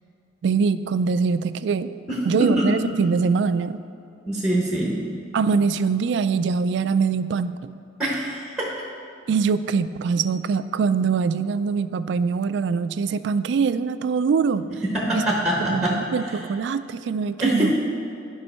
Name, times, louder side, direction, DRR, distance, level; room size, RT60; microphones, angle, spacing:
voice 1, 0.4-1.9 2.2-3.8 5.3-7.7 9.3-14.7 15.1-15.2 15.7-17.7, right 5 dB, 65° right, 13 dB, 0.3 m, -23 dB
voice 2, 2.1-2.7 4.3-5.0 8.0-8.7 14.7-16.4 17.4-17.8, equal, 5° right, -3 dB, 1.0 m, -24 dB
10.5 x 5.4 x 4.3 m, 2.6 s
head